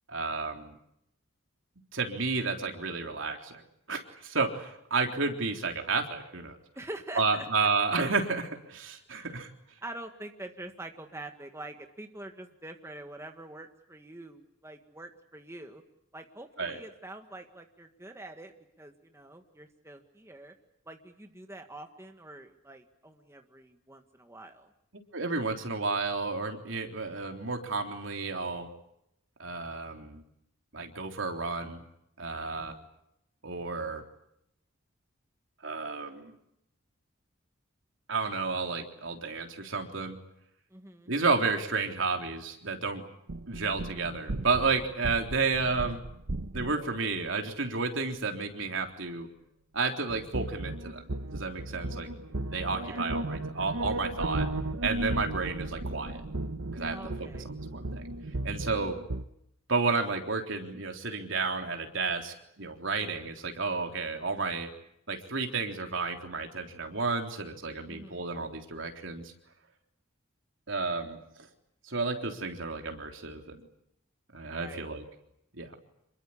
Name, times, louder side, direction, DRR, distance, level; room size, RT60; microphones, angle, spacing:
voice 1, 0.1-0.8 1.9-3.6 3.9-6.6 7.2-9.5 16.6-16.8 25.1-28.7 29.4-30.2 30.7-31.8 32.2-32.7 33.4-34.0 35.6-36.4 38.1-40.2 41.1-43.0 43.5-46.0 46.5-49.3 49.7-51.0 51.3-52.1 52.5-54.5 54.8-56.2 56.7-58.0 58.4-59.0 59.7-64.7 65.1-69.3 70.7-71.5 71.8-73.7 74.3-75.0 75.6-75.7, right 4 dB, 65° right, 4 dB, 3.7 m, -31 dB
voice 2, 6.8-7.5 9.1-9.4 9.8-15.8 16.1-18.5 18.8-20.5 20.9-24.7 32.6-32.8 40.7-41.1 52.8-53.0 56.9-57.5 67.9-68.2 74.4-74.9, right 2 dB, 15° right, 5 dB, 1.7 m, -45 dB
sound 1, 43.3-47.0 50.1-59.2, right 2 dB, 85° right, 1.1 m, -35 dB
27.0 x 22.5 x 8.7 m, 0.77 s
head